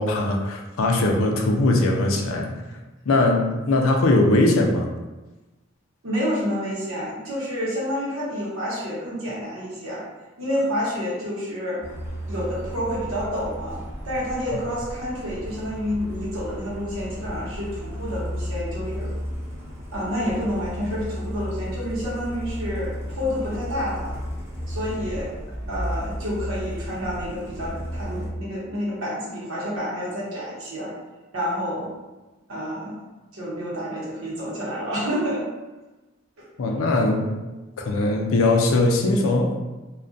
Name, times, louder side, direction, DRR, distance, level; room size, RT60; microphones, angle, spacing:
voice 1, 0.0-2.5 3.1-4.9 36.6-37.3 37.8-39.6, left 2 dB, 85° left, 1 dB, 0.4 m, -20 dB
voice 2, 6.0-10.0 10.4-11.9 12.3-19.1 19.9-24.1 24.7-25.3 25.7-30.9 31.3-31.9 32.5-33.0 33.3-35.4 36.4-36.5, equal, 85° right, -6 dB, 0.9 m, -29 dB
Truck, 11.8-28.3, equal, 15° right, 0.4 m, -33 dB
2.3 x 2.1 x 2.5 m, 1.1 s
head